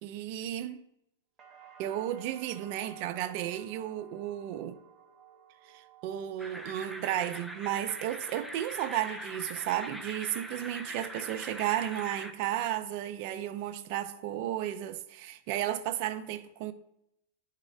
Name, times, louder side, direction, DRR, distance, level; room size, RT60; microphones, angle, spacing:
voice 1, 0.0-0.8 1.8-4.8 5.7-16.7, right 12 dB, 50° right, 0.5 m, -33 dB
sound 1, 1.4-9.3 9.7-10.3, right 9 dB, 20° right, 0.9 m, -55 dB
sound 2, 6.4-12.3, right 1 dB, ahead, 0.5 m, -42 dB
10.5 x 3.7 x 3.2 m
hypercardioid pair, 130°, 0 cm